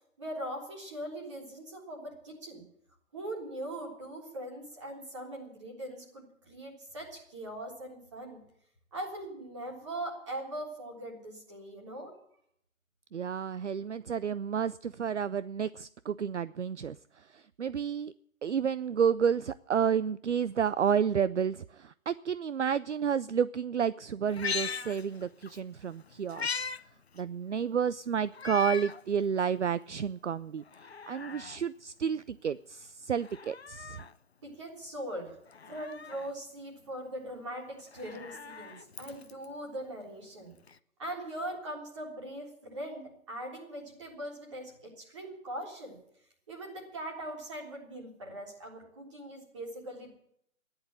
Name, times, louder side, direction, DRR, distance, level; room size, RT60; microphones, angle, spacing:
voice 1, 0.2-2.6 3.1-8.4 8.9-12.1 34.4-35.4 35.7-40.5 41.0-46.0 46.5-50.1, right 1 dB, 20° right, -2 dB, 3.6 m, -41 dB
voice 2, 13.1-18.1 18.4-26.6 27.2-30.6 31.1-34.0, right 7 dB, 60° right, 17 dB, 0.5 m, -31 dB
Meow, 24.3-25.6 25.9-26.8 27.2-27.3 28.3-29.0 29.5-29.6 30.6-31.6 33.1-34.1 35.5-36.3 37.8-39.5 40.7-40.8, left 5 dB, 50° left, 0.7 m, -39 dB
14.0 x 10.5 x 8.7 m, 0.71 s
hypercardioid pair, 175°, 40 cm